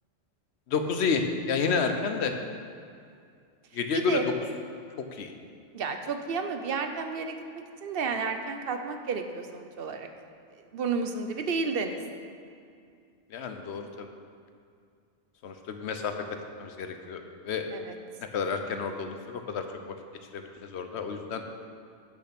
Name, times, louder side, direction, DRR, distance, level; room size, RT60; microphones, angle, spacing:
voice 1, 0.7-2.3 3.7-4.2 5.1-5.3 13.3-14.1 15.4-16.1 16.6-17.7 18.2-19.6 20.3-21.4, left 5 dB, 65° left, 6 dB, 1.0 m, -30 dB
voice 2, 3.9-4.2 5.7-7.4 7.8-10.1 10.7-12.0 17.7-18.0, right 5 dB, 60° right, 6 dB, 0.8 m, -31 dB
8.4 x 6.8 x 5.9 m, 2.3 s
omnidirectional pair, 1.2 m